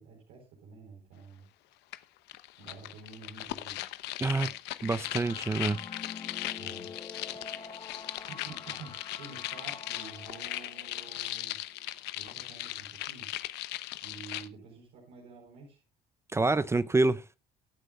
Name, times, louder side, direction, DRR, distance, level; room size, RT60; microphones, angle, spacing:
voice 1, 0.0-1.4 2.6-3.8 4.4-4.5 6.6-6.9 8.3-11.6 12.1-13.3 14.0-15.8, right 4 dB, 90° right, 4.5 m, -49 dB
sound 1, 1.9-2.0 2.3-14.5, left 16 dB, 85° left, 0.8 m, -38 dB
voice 2, 4.8-5.8 16.3-17.2, right 3 dB, 15° right, 0.5 m, -27 dB
sound 2, 5.0-11.8, left 5 dB, 30° left, 1.3 m, -47 dB
22.5 x 8.9 x 2.4 m
cardioid pair, 110°, 17 cm